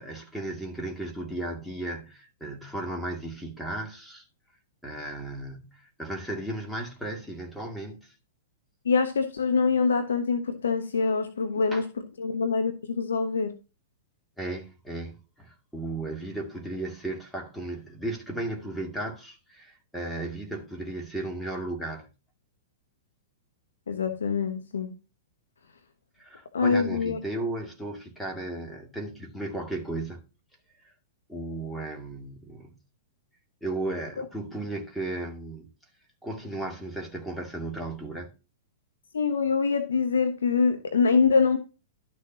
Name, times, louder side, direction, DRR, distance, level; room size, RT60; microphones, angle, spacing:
voice 1, 0.0-4.3 4.8-8.1 11.7-11.8 14.4-22.1 26.2-30.2 30.8-30.9 31.3-32.7 33.6-35.7 36.2-38.3, right 2 dB, ahead, 2.3 m, -35 dB
voice 2, 8.8-11.9 12.2-13.6 23.9-24.9 26.5-27.2 34.2-34.3 39.1-41.6, left 5 dB, 75° left, 1.2 m, -24 dB
12.5 x 6.4 x 2.8 m
figure-of-eight pair, 105°, 0 cm